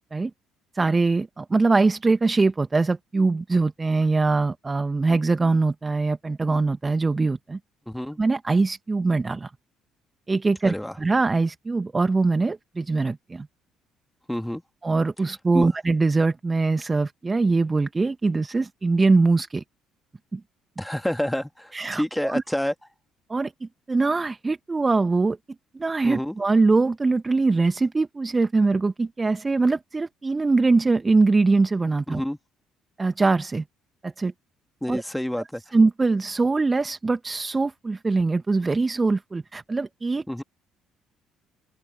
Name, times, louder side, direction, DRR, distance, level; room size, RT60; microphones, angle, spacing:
voice 1, 0.7-7.6 8.2-9.5 10.3-13.5 14.8-19.6 20.3-20.4 21.7-22.4 23.3-25.4 25.7-32.2 33.0-33.6 34.0-34.3 34.9-35.0 35.7-40.2, right 3 dB, 25° right, 1.8 m, -22 dB
voice 2, 7.9-8.2 10.6-11.0 14.3-14.6 15.5-15.7 20.8-22.7 26.0-26.3 32.1-32.4 34.8-35.6 40.3-40.4, left 1 dB, 5° left, 2.6 m, -28 dB
open air
figure-of-eight pair, 50°, 0 cm